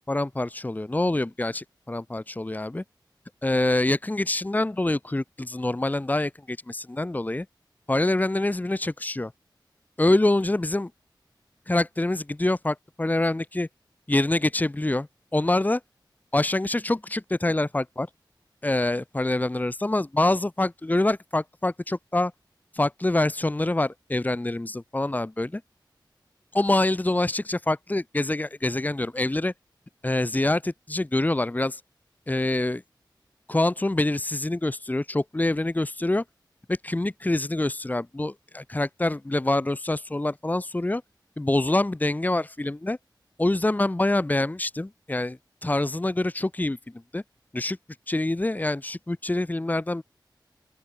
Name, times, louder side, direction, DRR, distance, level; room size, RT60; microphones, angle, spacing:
voice 1, 0.1-2.8 3.4-7.5 7.9-9.3 10.0-10.9 11.7-13.7 14.1-15.1 15.3-15.8 16.3-18.1 18.6-22.3 22.7-25.6 26.5-29.5 30.0-31.8 32.3-32.8 33.5-36.2 36.7-41.0 41.4-43.0 43.4-46.8 47.1-47.2 47.5-47.8 48.1-50.0, left 2 dB, 20° left, 1.5 m, -25 dB
open air
wide cardioid pair, 100°, 8 cm